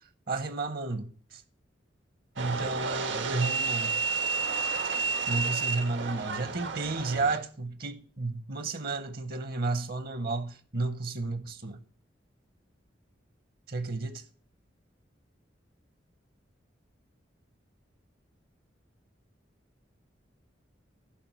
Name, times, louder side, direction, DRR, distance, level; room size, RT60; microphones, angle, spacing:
voice 1, 0.3-1.4 2.4-4.0 5.3-11.8 13.7-14.2, right 3 dB, 55° right, 0.8 m, -32 dB
sound 1, 2.4-7.4, right 4 dB, 85° right, 1.2 m, -31 dB
11.5 x 5.0 x 5.8 m
head